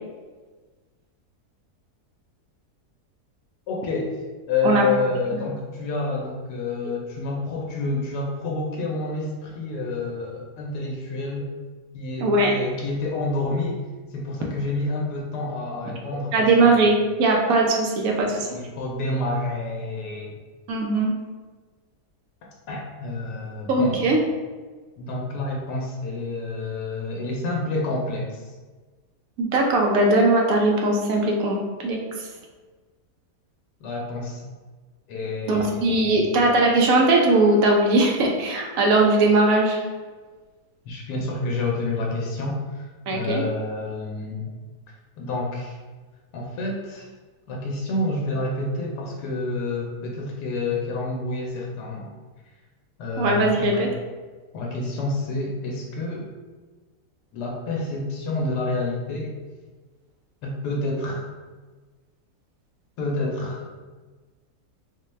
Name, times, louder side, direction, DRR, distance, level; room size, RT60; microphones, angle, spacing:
voice 1, 3.7-4.2 4.5-11.5 11.9-13.8 14.1-16.6 18.3-20.4 22.7-24.0 25.0-28.4 33.8-34.4 35.1-36.2 40.9-44.5 44.9-45.8 46.3-47.1 47.5-52.1 53.0-53.9 54.5-56.3 57.3-59.3 60.4-61.3 63.0-63.7, left 2 dB, 90° left, -2 dB, 1.2 m, -28 dB
voice 2, 12.2-12.5 16.3-18.5 20.7-21.1 23.7-24.2 29.4-32.0 35.5-39.8 43.1-43.4 53.2-53.9, right 2 dB, 65° right, 0 dB, 0.9 m, -19 dB
4.0 x 2.2 x 3.1 m, 1.3 s
omnidirectional pair, 1.7 m